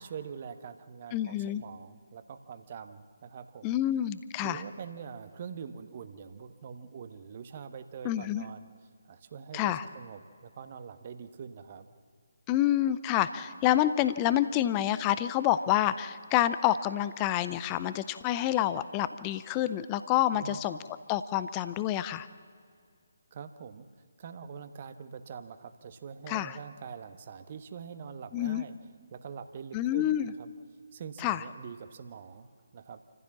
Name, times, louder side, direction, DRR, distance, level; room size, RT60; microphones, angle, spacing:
voice 1, 0.0-3.8 4.4-8.7 9.0-11.9 20.3-20.6 23.3-23.9 24.2-28.7 29.1-30.5 30.9-33.0, right 6 dB, 35° right, 10 dB, 1.2 m, -44 dB
voice 2, 1.1-1.6 3.6-4.6 8.0-8.5 9.5-9.8 12.5-20.8 21.1-22.3 26.3-26.6 28.3-28.6 29.7-30.3 31.2-31.4, left 12 dB, 20° left, 14 dB, 0.6 m, -28 dB
28.5 x 15.0 x 7.3 m, 2.2 s
figure-of-eight pair, 145°, 0 cm